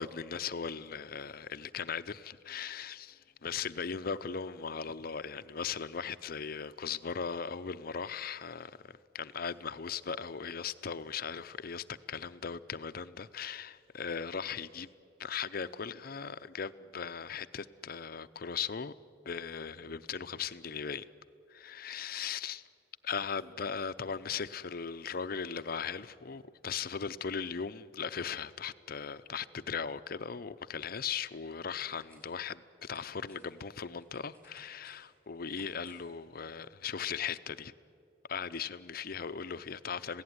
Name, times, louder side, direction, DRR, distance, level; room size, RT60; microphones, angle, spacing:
voice 1, 0.0-14.9 15.2-18.9 19.2-21.0 21.5-22.6 23.0-37.7 38.3-40.2, left 6 dB, 55° left, 0.7 m, -38 dB
sound 1, 31.4-32.4 32.8-36.2 36.5-36.6, right 1 dB, 15° right, 6.4 m, -63 dB
27.0 x 17.5 x 9.6 m
head